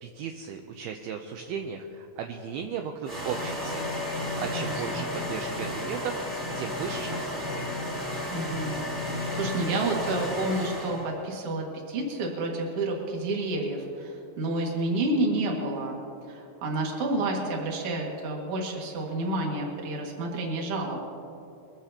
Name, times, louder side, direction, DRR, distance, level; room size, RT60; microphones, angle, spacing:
voice 1, 0.0-4.0 4.4-7.7, right 7 dB, 80° right, 4 dB, 2.2 m, -36 dB
sound 1, 3.1-11.2, left 1 dB, 20° right, 2.6 m, -33 dB
voice 2, 4.4-5.0 8.3-8.8 9.3-21.0, right 2 dB, 45° right, -1 dB, 2.1 m, -30 dB
22.0 x 15.0 x 2.9 m, 2.8 s
omnidirectional pair, 5.1 m